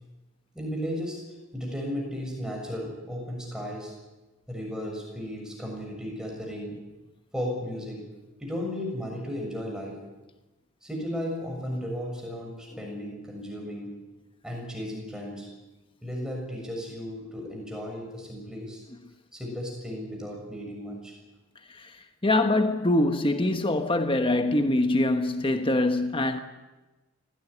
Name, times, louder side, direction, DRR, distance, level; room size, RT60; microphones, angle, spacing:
voice 1, 0.5-1.2 1.5-3.9 4.5-6.8 7.3-8.0 8.4-10.0 10.8-13.9 14.4-15.5 16.0-18.8 19.3-21.1, equal, 5° right, 6.9 m, -35 dB
voice 2, 22.2-26.4, left 2 dB, 25° left, 1.2 m, -24 dB
24.5 x 17.0 x 9.8 m
head